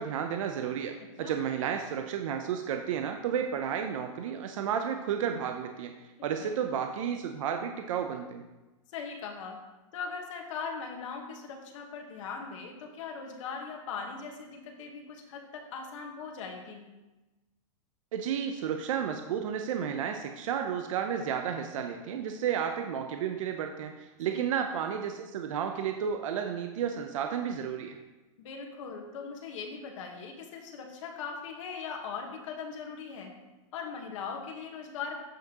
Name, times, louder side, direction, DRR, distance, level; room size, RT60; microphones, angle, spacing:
voice 1, 0.0-5.9 6.2-8.4 18.1-28.0, right 8 dB, 70° right, 5 dB, 0.6 m, -32 dB
voice 2, 8.9-9.6 9.9-16.9 24.3-24.4 28.4-33.3 33.7-35.2, left 5 dB, 65° left, 2 dB, 1.3 m, -40 dB
8.0 x 6.0 x 2.9 m, 1.1 s
supercardioid pair, 150°, 17 cm